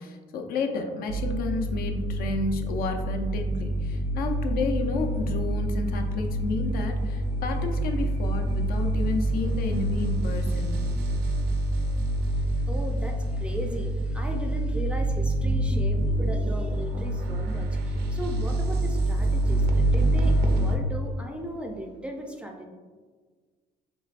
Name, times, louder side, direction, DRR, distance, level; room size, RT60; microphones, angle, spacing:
voice 1, 0.0-10.8, left 3 dB, 60° left, 4 dB, 0.5 m, -31 dB
sound 1, 1.1-20.8, right 1 dB, 75° right, 0.5 m, -26 dB
voice 2, 12.3-22.7, equal, 5° right, 2 dB, 0.4 m, -37 dB
4.6 x 3.1 x 2.4 m, 1.5 s
cardioid pair, 110°, 17 cm